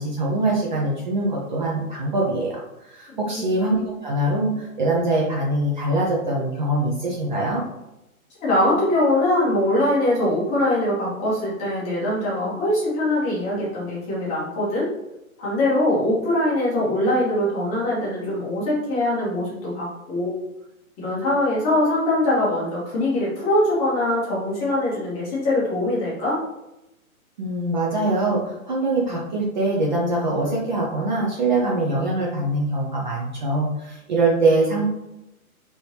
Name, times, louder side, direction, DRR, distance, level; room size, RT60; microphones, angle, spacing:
voice 1, 0.0-7.6 27.4-34.9, right 2 dB, 35° right, -3 dB, 0.5 m, -23 dB
voice 2, 3.1-3.4 8.4-14.9 15.4-20.4 21.0-26.4, left 1 dB, 15° left, -6 dB, 0.9 m, -22 dB
3.3 x 3.0 x 2.7 m, 0.91 s
hypercardioid pair, 150°, 43 cm